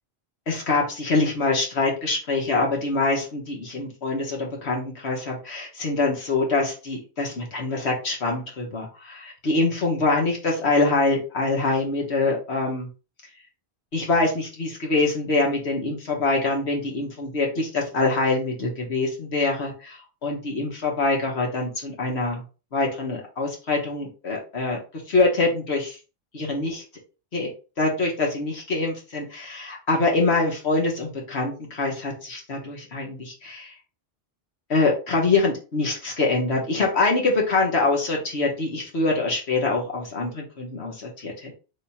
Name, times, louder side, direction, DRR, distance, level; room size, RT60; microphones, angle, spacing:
voice 1, 0.5-12.9 13.9-20.0 20.2-22.4 22.7-24.8 25.1-26.0 26.3-26.8 27.3-27.5 27.8-33.7 34.7-41.5, left 3 dB, 80° left, 0 dB, 1.7 m, -24 dB
3.7 x 3.2 x 4.2 m, 0.33 s
omnidirectional pair, 1.1 m